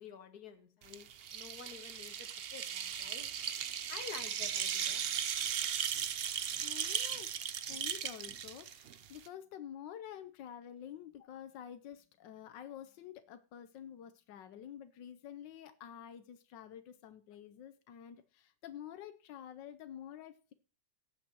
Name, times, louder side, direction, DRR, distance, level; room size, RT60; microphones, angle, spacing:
voice 1, 0.0-3.3 3.9-5.0, left 6 dB, 60° left, 8 dB, 1.8 m, -50 dB
sound 1, 0.8-9.3, right 8 dB, 70° right, 0.5 m, -37 dB
voice 2, 6.6-20.5, left 10 dB, 90° left, 10 dB, 1.4 m, -49 dB
18.0 x 8.4 x 2.9 m, 0.36 s
omnidirectional pair, 1.9 m